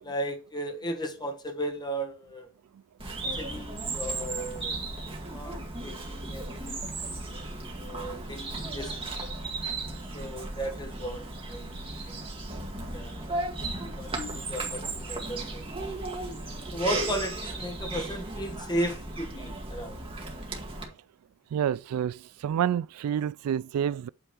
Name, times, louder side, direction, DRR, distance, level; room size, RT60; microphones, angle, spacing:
voice 1, 0.0-2.5 3.3-4.8 5.3-6.8 7.8-9.3 10.1-12.3 12.9-13.4 14.0-16.0 16.7-20.0, right 1 dB, 20° left, 1.4 m, -35 dB
Bird vocalization bird call bird song, 3.0-20.8, right 2 dB, 25° right, 2.0 m, -35 dB
voice 2, 21.5-24.1, right 9 dB, 85° right, 0.3 m, -28 dB
8.9 x 3.5 x 6.9 m
head